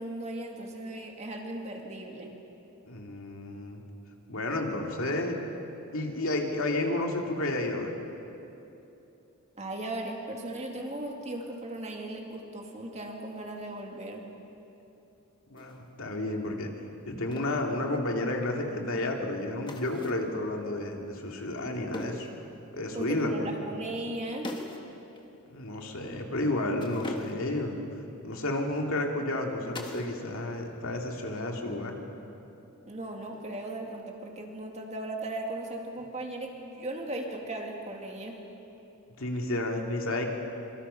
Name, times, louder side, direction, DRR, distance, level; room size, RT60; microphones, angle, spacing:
voice 1, 0.0-2.4 9.5-14.3 22.9-24.5 32.9-38.4, right 1 dB, 30° right, 1 dB, 2.3 m, -37 dB
voice 2, 2.8-3.8 4.3-5.4 5.9-8.0 15.5-16.7 17.0-22.3 22.7-23.5 25.5-27.8 28.2-32.0 39.2-40.3, left 1 dB, 65° left, 1 dB, 2.5 m, -31 dB
sound 1, 15.6-15.8 17.3-17.6 19.7-20.3 21.9-22.4 24.4-24.9 25.2-25.3 26.8-27.6 29.7-30.2 30.5-31.0 33.3-33.8, left 1 dB, 20° left, 1.6 m, -41 dB
25.5 x 24.5 x 5.7 m, 2.9 s
head